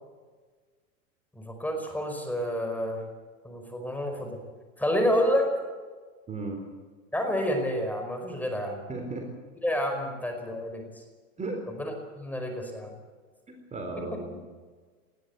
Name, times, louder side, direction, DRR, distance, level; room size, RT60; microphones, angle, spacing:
voice 1, 1.4-3.0 3.4-4.4 4.8-5.5 7.1-8.8 9.6-10.9 11.8-12.9, equal, 5° left, 4 dB, 5.2 m, -29 dB
voice 2, 6.3-6.6 8.9-9.3 11.4-11.7 13.5-14.4, right 3 dB, 20° right, 3 dB, 4.0 m, -35 dB
20.5 x 15.5 x 8.2 m, 1.4 s
hypercardioid pair, 125°, 39 cm